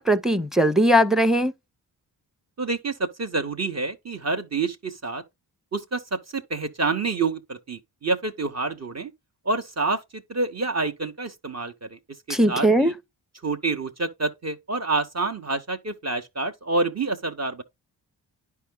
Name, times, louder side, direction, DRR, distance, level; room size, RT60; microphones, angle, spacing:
voice 1, 0.0-1.5 12.3-12.9, right 1 dB, ahead, 0.8 m, -19 dB
voice 2, 2.6-5.2 5.7-9.1 9.4-12.0 12.3-12.9 13.4-17.6, right 3 dB, 35° right, 1.0 m, -28 dB
10.5 x 4.7 x 2.2 m
supercardioid pair, 45°, 46 cm